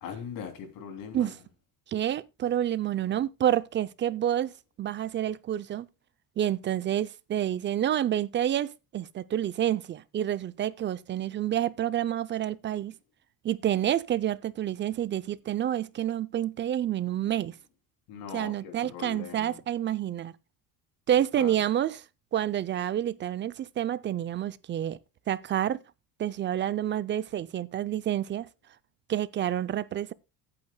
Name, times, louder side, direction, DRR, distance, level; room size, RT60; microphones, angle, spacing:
voice 1, 0.0-1.3 18.1-19.6 21.4-21.6, left 7 dB, 70° left, 3.1 m, -40 dB
voice 2, 1.9-4.5 4.8-5.9 6.4-12.9 13.4-17.5 18.3-20.3 21.1-22.0 22.3-25.0 25.3-25.8 26.2-28.5 29.1-30.1, right 11 dB, 30° right, 0.5 m, -28 dB
16.0 x 8.6 x 2.2 m
cardioid pair, 125°, 35 cm